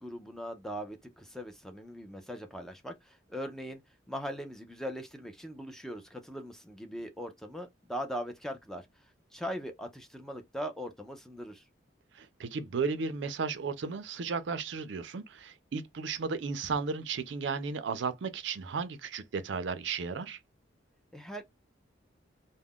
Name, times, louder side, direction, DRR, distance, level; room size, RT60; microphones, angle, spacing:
voice 1, 0.0-3.8 4.1-11.7 21.1-21.4, equal, ahead, 0.4 m, -40 dB
voice 2, 12.1-20.4, right 5 dB, 65° right, 0.4 m, -34 dB
2.3 x 2.1 x 3.5 m
head